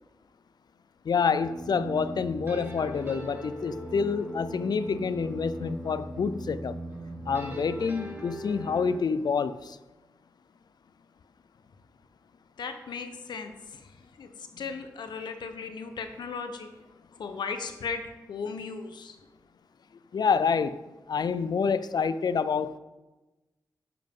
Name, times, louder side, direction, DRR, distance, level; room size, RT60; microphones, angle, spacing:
voice 1, 1.0-6.8 7.3-9.8 20.1-20.8 21.1-22.8, left 5 dB, 70° left, 15 dB, 0.5 m, -27 dB
sound 1, 1.4-9.0, right 1 dB, 30° right, 3.4 m, -39 dB
voice 2, 12.6-13.5 13.8-13.9 14.2-14.3 14.6-16.7 17.2-18.0 18.3-19.1, left 5 dB, 85° left, 7 dB, 1.1 m, -36 dB
11.0 x 9.0 x 3.8 m, 1.1 s
cardioid pair, 45°, 7 cm